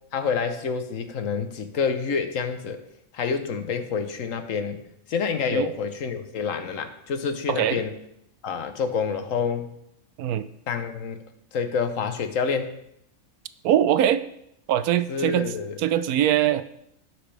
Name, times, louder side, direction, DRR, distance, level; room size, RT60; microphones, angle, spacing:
voice 1, 0.1-2.8 3.1-4.8 5.1-7.9 8.4-9.7 10.7-11.2 11.5-12.7 15.1-15.8, left 5 dB, 60° left, 8 dB, 1.3 m, -27 dB
voice 2, 7.5-7.8 10.2-10.5 13.6-14.2 14.7-15.5 15.8-16.6, right 11 dB, 80° right, 13 dB, 1.1 m, -22 dB
18.0 x 6.1 x 3.3 m, 0.77 s
omnidirectional pair, 1.6 m